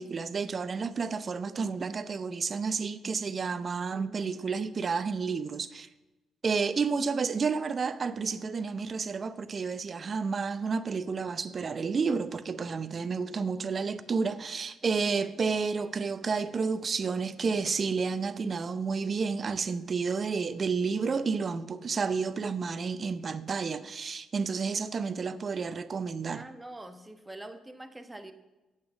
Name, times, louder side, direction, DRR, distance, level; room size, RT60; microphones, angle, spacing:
voice 1, 0.0-5.9 6.4-26.4, right 5 dB, 40° right, 0.7 m, -31 dB
voice 2, 26.2-28.3, right 1 dB, 10° right, 1.2 m, -44 dB
8.5 x 8.2 x 8.3 m
cardioid pair, 90°, 0 cm